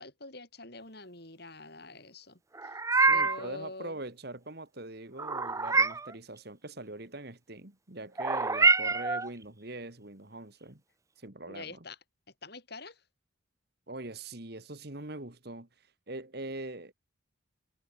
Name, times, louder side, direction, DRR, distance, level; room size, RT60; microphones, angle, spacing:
voice 1, 0.0-2.7 3.1-4.0 11.5-12.0 12.4-13.0, left 2 dB, 50° left, 7.7 m, -45 dB
Meow, 2.5-3.5 5.2-6.1 8.2-9.3, right 3 dB, 15° right, 0.6 m, -26 dB
voice 2, 2.9-10.8 11.2-11.8 13.9-15.7 16.1-16.9, right 2 dB, 50° right, 2.1 m, -42 dB
head